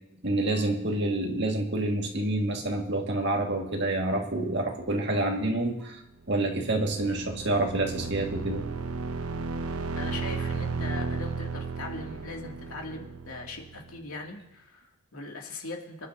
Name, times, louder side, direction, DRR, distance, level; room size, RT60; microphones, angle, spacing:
voice 1, 0.2-6.0 6.3-8.7, right 2 dB, 55° right, 2 dB, 1.9 m, -28 dB
sound 1, 6.3-14.0, right 4 dB, 90° right, 0.7 m, -34 dB
voice 2, 10.0-16.1, left 2 dB, 85° left, 0 dB, 2.4 m, -40 dB
25.0 x 11.0 x 2.7 m, 0.91 s
head